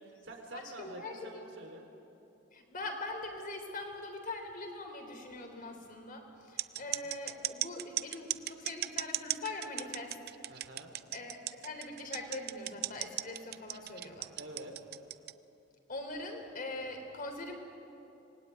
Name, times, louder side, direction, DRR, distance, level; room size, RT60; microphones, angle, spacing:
voice 1, 0.0-1.9 6.8-7.1 10.5-10.9 14.4-14.8, right 1 dB, 90° right, 3 dB, 3.8 m, -48 dB
voice 2, 0.5-1.5 2.5-10.1 11.1-14.3 15.9-17.5, left 2 dB, 50° left, 4 dB, 3.5 m, -42 dB
sound 1, 6.6-15.3, right 15 dB, 55° right, 0.5 m, -36 dB
25.5 x 20.0 x 9.4 m, 2.9 s
head